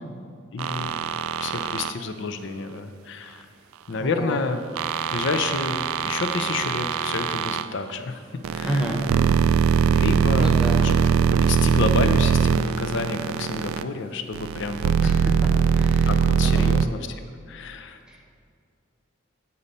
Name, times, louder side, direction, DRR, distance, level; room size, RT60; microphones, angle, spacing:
voice 1, 0.5-1.0 1.4-3.5 3.9-4.6 5.1-8.3 8.5-9.0 9.9-11.0 11.4-15.1 16.0-18.0, left 4 dB, 60° left, 8 dB, 0.5 m, -30 dB
sound 1, 0.6-1.9 4.8-7.7 8.4-13.8 14.3-16.9, right 7 dB, 85° right, 0.3 m, -22 dB
voice 2, 4.0-4.4 8.6-9.0 9.9-10.0 10.3-10.9 15.0-15.3 15.7-16.7 18.1-18.4, equal, 5° right, -1 dB, 0.9 m, -30 dB
8.5 x 4.2 x 5.3 m, 2.2 s
head